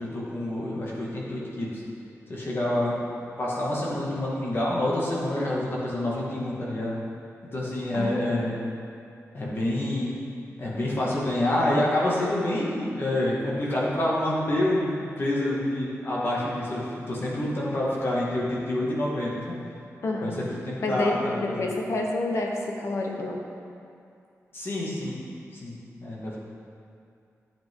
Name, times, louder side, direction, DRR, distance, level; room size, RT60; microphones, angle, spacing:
voice 1, 0.0-1.8 2.3-3.0 3.4-6.9 7.5-8.6 9.3-10.2 10.6-19.6 20.2-21.7 24.5-25.2 25.5-25.8 26.0-26.4, left 1 dB, 45° left, -6 dB, 2.2 m, -27 dB
voice 2, 7.9-8.8 20.0-20.4 20.8-23.4, left 2 dB, 60° left, 0 dB, 1.2 m, -29 dB
11.5 x 8.9 x 3.9 m, 2.5 s
wide cardioid pair, 145°, 5 cm